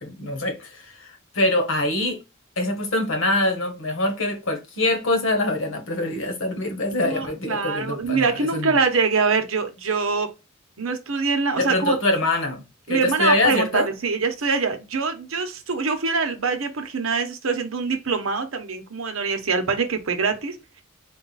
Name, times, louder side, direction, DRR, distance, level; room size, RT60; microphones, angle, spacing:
voice 1, 0.0-1.1 1.3-2.2 2.6-8.7 11.6-13.9, left 2 dB, 70° left, 1.3 m, -24 dB
voice 2, 7.0-10.3 10.8-12.0 12.9-20.8, right 4 dB, 80° right, 0.9 m, -24 dB
4.4 x 2.4 x 4.0 m
head